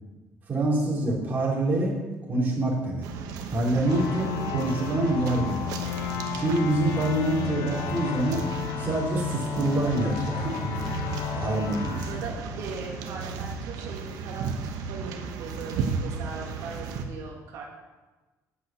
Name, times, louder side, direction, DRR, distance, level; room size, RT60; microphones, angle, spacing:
voice 1, 0.5-3.1 3.5-5.7 6.4-8.5 8.8-10.9 11.3-12.1, right 2 dB, 30° right, -4 dB, 3.3 m, -26 dB
sound 1, 3.0-17.0, right 5 dB, 85° right, 1.1 m, -35 dB
sound 2, 3.8-13.2, left 9 dB, 90° left, 0.8 m, -33 dB
voice 2, 3.9-4.9 12.0-14.5 14.9-17.6, right 4 dB, 70° right, -1 dB, 1.8 m, -39 dB
8.3 x 6.1 x 8.2 m, 1.2 s
cardioid pair, 155°, 6 cm